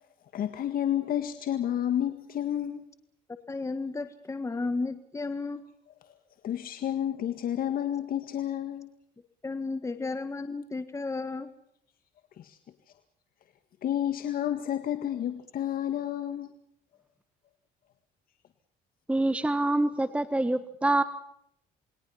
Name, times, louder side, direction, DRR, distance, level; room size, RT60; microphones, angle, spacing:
voice 1, 0.3-2.8 6.4-8.9 12.4-12.6 13.8-16.5, left 10 dB, 60° left, 8 dB, 1.9 m, -30 dB
voice 2, 3.5-5.6 9.4-11.5, left 3 dB, 15° left, 10 dB, 1.6 m, -33 dB
voice 3, 19.1-21.0, right 2 dB, 5° right, 11 dB, 1.4 m, -26 dB
28.5 x 21.5 x 5.8 m, 0.73 s
cardioid pair, 110°, 17 cm